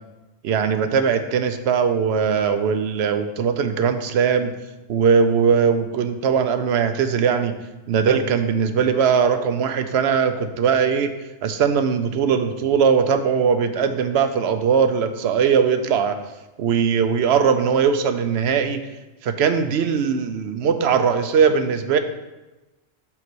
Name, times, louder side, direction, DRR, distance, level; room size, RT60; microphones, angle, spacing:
voice 1, 0.4-4.5 4.9-7.5 7.9-11.1 11.4-16.2 16.6-18.8 19.2-22.0, right 6 dB, 70° right, 9 dB, 0.8 m, -20 dB
5.8 x 4.0 x 6.1 m, 1.1 s
omnidirectional pair, 1.2 m